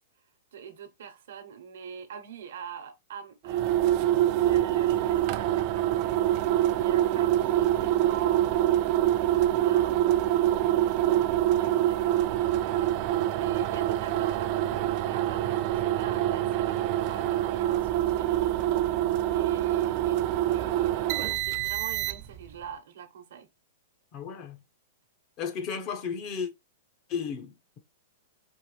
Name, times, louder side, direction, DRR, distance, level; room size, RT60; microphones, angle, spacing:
voice 1, 0.5-3.7 4.4-8.5 9.2-10.5 10.8-18.7 19.3-23.5, right 7 dB, 70° right, 1.0 m, -44 dB
sound 1, 3.5-22.5, right 13 dB, 40° right, 0.4 m, -25 dB
voice 2, 24.1-24.6 25.4-26.5 27.1-27.8, left 6 dB, 35° left, 0.9 m, -34 dB
4.5 x 3.2 x 3.1 m
hypercardioid pair, 155°, 0 cm